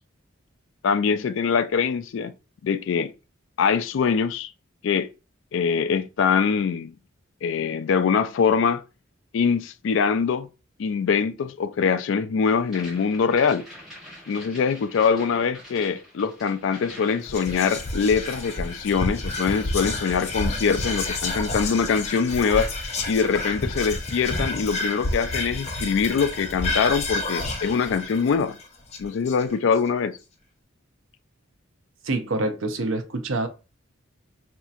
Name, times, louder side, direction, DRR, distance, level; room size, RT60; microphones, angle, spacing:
voice 1, 0.8-2.3 2.6-3.1 3.6-4.5 4.8-5.1 5.5-6.9 7.4-8.8 9.3-10.5 10.8-13.6 14.3-22.7 23.1-28.6 29.0-30.2, left 6 dB, 65° left, 0.3 m, -23 dB
sound 1, 12.6-19.2 19.4-20.4, equal, ahead, 1.1 m, -46 dB
Whispering, 17.2-29.7, left 2 dB, 30° left, 0.7 m, -29 dB
voice 2, 32.0-33.5, right 2 dB, 70° right, 0.6 m, -26 dB
4.1 x 2.8 x 2.4 m
head